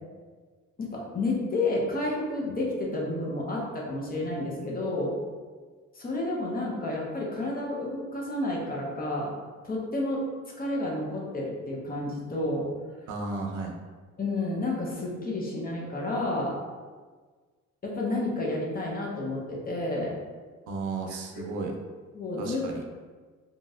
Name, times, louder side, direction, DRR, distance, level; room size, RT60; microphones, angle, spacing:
voice 1, 0.8-5.1 5.9-9.3 9.6-10.2 10.6-12.7 14.2-16.6 17.8-20.1 22.1-22.7, left 2 dB, 30° left, -3 dB, 0.7 m, -30 dB
voice 2, 13.1-13.7 20.7-21.8 22.4-22.8, right 3 dB, 85° right, 1 dB, 0.5 m, -33 dB
2.9 x 2.6 x 2.4 m, 1.5 s
cardioid pair, 90°, 30 cm